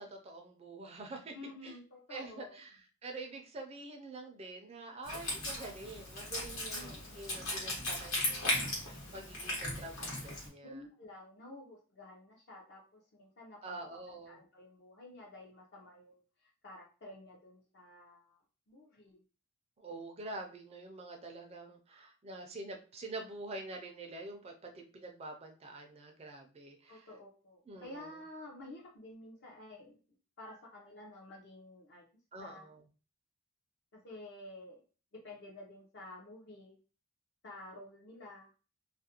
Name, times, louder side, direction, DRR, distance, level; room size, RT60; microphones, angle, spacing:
voice 1, 0.0-1.4 1.6-1.8 2.1-10.8 13.6-14.4 19.8-27.1 27.7-28.2 32.3-32.9, right 2 dB, 30° right, 3 dB, 0.4 m, -46 dB
voice 2, 1.3-2.6 6.7-7.1 10.6-13.8 14.1-18.4 18.7-19.2 26.9-30.0 30.4-32.0 32.4-32.7 33.9-34.8 35.1-36.8 37.4-38.5, left 1 dB, 55° left, -2 dB, 0.6 m, -51 dB
Wind instrument woodwind instrument, 5.0-10.5, left 1 dB, 85° left, 1.1 m, -37 dB
2.4 x 2.1 x 2.7 m, 0.35 s
head